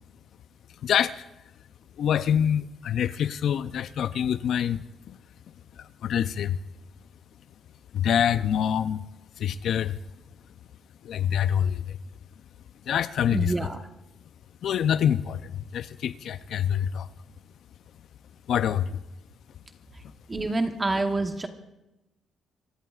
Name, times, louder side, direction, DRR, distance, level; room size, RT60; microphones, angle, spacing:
voice 1, 0.8-1.2 2.0-4.8 5.1-5.2 6.0-6.6 7.9-9.0 9.4-10.0 11.0-11.8 12.9-13.7 14.6-17.1 18.5-19.0, left 9 dB, 70° left, 13 dB, 0.5 m, -25 dB
voice 2, 13.3-13.8 20.3-21.5, right 2 dB, 20° right, 5 dB, 1.1 m, -27 dB
27.0 x 17.0 x 2.4 m, 0.95 s
cardioid pair, 110°, 0 cm